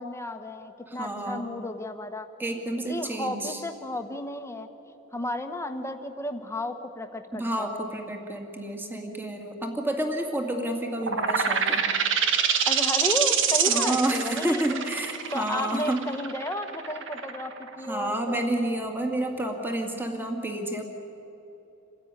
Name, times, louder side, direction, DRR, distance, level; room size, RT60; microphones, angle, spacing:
voice 1, 0.0-2.3 2.9-7.8 12.7-14.6 15.3-18.4, left 1 dB, 15° left, 7 dB, 1.3 m, -33 dB
voice 2, 0.9-1.5 2.4-3.6 7.3-11.9 13.7-16.0 17.8-20.8, right 1 dB, 10° right, 3 dB, 2.2 m, -30 dB
sound 1, 11.0-18.4, right 7 dB, 60° right, 1.4 m, -26 dB
27.0 x 16.0 x 9.9 m, 3.0 s
head